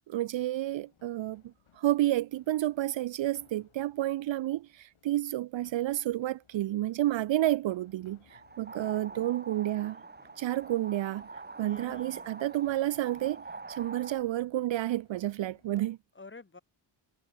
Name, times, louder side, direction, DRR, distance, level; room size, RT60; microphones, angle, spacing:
voice 1, 0.1-10.0 10.4-11.3 11.6-16.0, right 14 dB, 65° right, 0.6 m, -30 dB
sound 1, 0.8-15.9, left 9 dB, 70° left, 7.3 m, -66 dB
sound 2, 8.3-14.2, right 3 dB, 20° right, 2.1 m, -45 dB
voice 2, 8.7-9.3 11.6-12.3 16.1-16.6, left 3 dB, 25° left, 6.4 m, -51 dB
wide cardioid pair, 130°, 50 cm